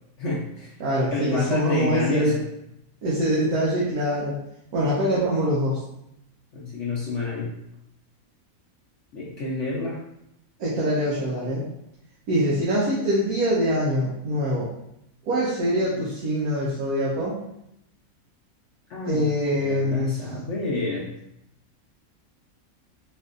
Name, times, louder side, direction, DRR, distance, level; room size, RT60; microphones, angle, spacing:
voice 1, 0.2-0.8 1.1-2.5 6.5-7.5 9.1-10.0 18.9-19.3 19.6-21.1, left 3 dB, 60° left, -6 dB, 1.0 m, -29 dB
voice 2, 0.8-2.4 3.0-4.4 4.7-5.8 10.6-11.6 12.3-14.7 15.3-17.4 19.1-20.1, equal, 85° right, -8 dB, 1.4 m, -24 dB
4.3 x 2.6 x 2.5 m, 0.79 s
omnidirectional pair, 1.5 m